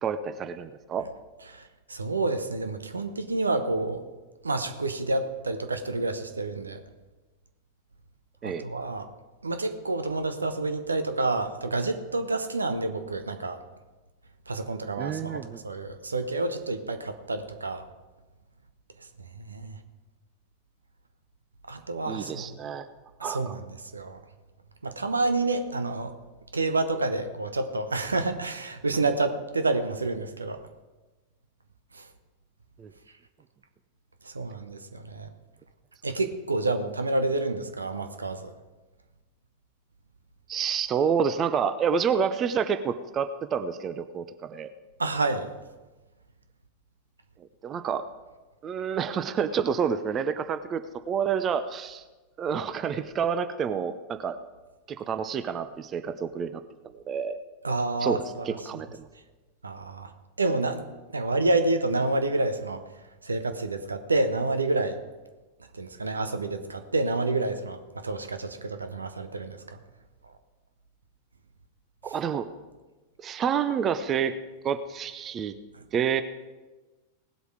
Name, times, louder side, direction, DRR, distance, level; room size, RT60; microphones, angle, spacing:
voice 1, 0.0-1.1 8.4-8.6 15.0-15.6 22.1-22.9 23.2-23.5 32.8-32.9 40.5-44.7 47.6-48.1 48.6-50.8 51.1-52.0 52.4-54.4 54.9-56.6 57.1-57.4 58.0-59.1 72.0-72.5 73.2-74.4 74.6-75.5 75.9-76.2, right 7 dB, 25° right, 11 dB, 0.7 m, -28 dB
voice 2, 1.5-4.0 4.4-6.8 8.4-9.1 9.4-13.6 14.5-17.9 19.2-19.8 21.7-22.6 23.2-24.2 24.8-26.1 26.5-30.6 31.9-32.1 34.2-35.3 36.0-38.5 45.0-45.5 57.6-58.5 59.6-60.1 60.4-60.9 61.1-62.8 63.2-65.0 65.7-69.8 75.7-75.8, right 2 dB, 75° right, 8 dB, 1.0 m, -29 dB
18.5 x 8.1 x 4.9 m, 1.2 s
figure-of-eight pair, 90°, 0 cm